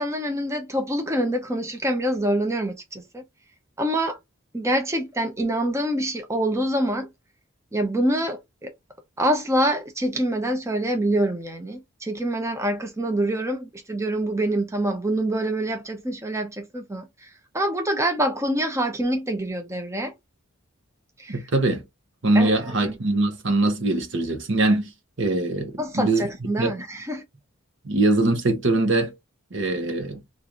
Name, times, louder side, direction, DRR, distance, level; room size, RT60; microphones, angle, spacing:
voice 1, 0.0-3.2 3.8-4.2 4.5-7.1 7.7-8.7 9.2-20.1 21.2-21.5 22.3-23.0 25.8-27.2, right 1 dB, 15° right, 0.7 m, -26 dB
voice 2, 21.3-21.8 22.2-24.9 25.2-26.2 26.6-26.7 27.8-29.1 29.5-30.2, right 2 dB, 60° right, 0.9 m, -22 dB
3.7 x 2.5 x 2.9 m
head